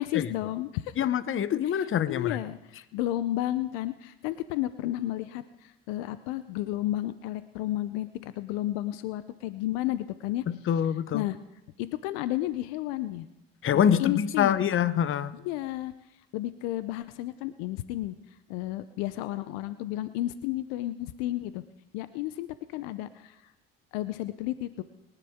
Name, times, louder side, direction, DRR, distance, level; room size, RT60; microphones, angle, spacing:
voice 1, 0.0-0.9 2.1-10.4 11.1-11.4 11.8-13.3 13.7-14.6 15.3-15.9 16.3-18.1 18.5-21.6 21.9-23.4 23.9-24.8, left 15 dB, 80° left, 14 dB, 0.7 m, -32 dB
voice 2, 1.0-2.4 10.5-11.2 13.6-15.3, left 9 dB, 45° left, 15 dB, 0.8 m, -25 dB
22.5 x 10.0 x 3.6 m, 0.87 s
hypercardioid pair, 70°, 30 cm